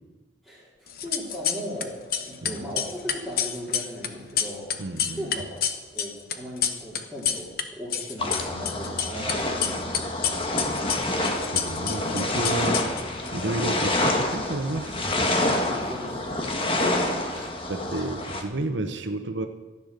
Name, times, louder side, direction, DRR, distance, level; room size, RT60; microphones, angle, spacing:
voice 1, 0.4-4.7 5.2-5.6 5.9-10.1 15.6-16.6, equal, ahead, -9 dB, 3.0 m, -37 dB
sound 1, 0.9-1.8 2.1-7.6 7.9-9.3 9.6-13.3, left 9 dB, 55° left, 0.9 m, -28 dB
voice 2, 4.8-5.3 11.5-12.9 13.3-15.0 17.4-19.5, right 2 dB, 90° right, 7 dB, 1.0 m, -31 dB
sound 2, 8.2-18.4, left 1 dB, 30° left, 1.4 m, -27 dB
14.5 x 10.0 x 6.6 m, 1.2 s
head